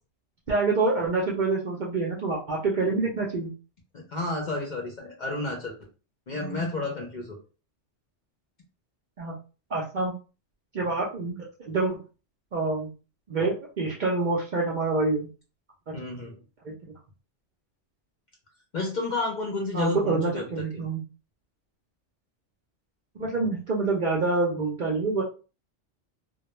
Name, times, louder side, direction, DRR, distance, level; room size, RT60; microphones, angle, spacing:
voice 1, 0.5-3.5 9.2-9.4 9.7-10.1 10.7-12.0 12.5-12.9 13.3-15.3 16.6-16.7 19.7-21.0 23.2-25.2, right 3 dB, 55° right, -3 dB, 0.5 m, -26 dB
voice 2, 3.9-5.7 6.3-7.4 15.9-16.4 18.7-20.4 20.7-20.8, left 2 dB, 50° left, 0 dB, 0.6 m, -31 dB
2.2 x 2.2 x 2.9 m, 0.34 s
omnidirectional pair, 1.2 m